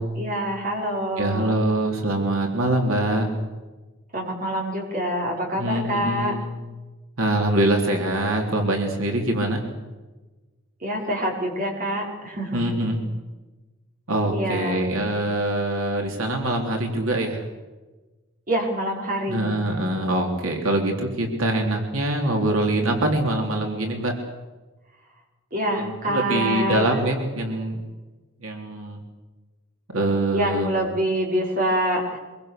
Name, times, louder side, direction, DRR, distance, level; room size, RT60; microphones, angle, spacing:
voice 1, 0.0-1.6 4.1-6.3 10.8-12.8 14.3-14.8 18.5-19.5 25.5-27.0 30.3-32.2, equal, 40° right, -1 dB, 5.7 m, -26 dB
voice 2, 1.2-3.3 5.6-6.6 7.2-9.6 12.5-13.0 14.1-17.4 19.3-24.1 25.8-27.8 28.4-29.0 29.9-30.9, right 1 dB, 90° right, 2 dB, 3.6 m, -24 dB
24.5 x 23.5 x 6.8 m, 1.2 s
head